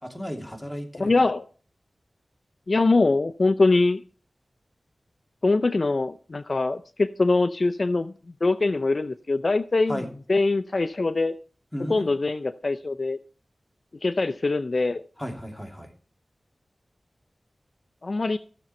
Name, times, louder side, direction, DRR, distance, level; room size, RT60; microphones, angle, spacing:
voice 1, 0.0-1.2 9.9-10.1 11.7-12.2 15.2-15.9, equal, 10° left, 2 dB, 2.9 m, -34 dB
voice 2, 1.0-1.4 2.7-4.0 5.4-8.1 8.4-10.0 10.3-11.3 11.9-13.2 14.0-15.0 18.0-18.4, left 3 dB, 55° left, 12 dB, 0.5 m, -23 dB
14.5 x 6.9 x 4.3 m, 0.40 s
wide cardioid pair, 55°, 0 cm